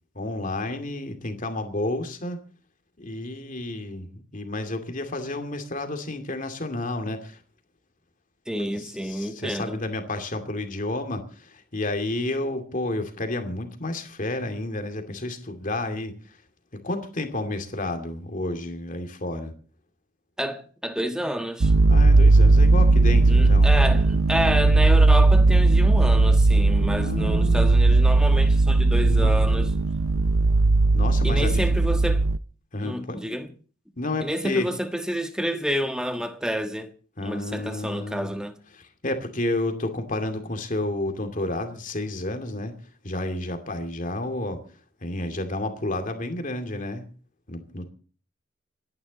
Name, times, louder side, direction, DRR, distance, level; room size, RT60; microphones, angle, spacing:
voice 1, 0.2-2.4 3.0-7.4 8.7-16.1 16.7-19.5 21.9-23.7 27.0-27.7 28.8-29.4 30.9-31.6 32.7-33.2 34.0-34.7 37.2-38.3 38.7-42.7 43.0-44.6 45.0-47.0 47.5-47.9, left 2 dB, 40° left, 2.5 m, -31 dB
voice 2, 8.5-9.8 20.4-21.7 23.3-29.7 31.2-32.2 32.8-33.5 34.2-36.9 37.2-38.5, equal, 5° right, 1.5 m, -29 dB
sound 1, 21.6-32.4, right 3 dB, 85° right, 0.6 m, -18 dB
27.5 x 11.0 x 4.1 m
head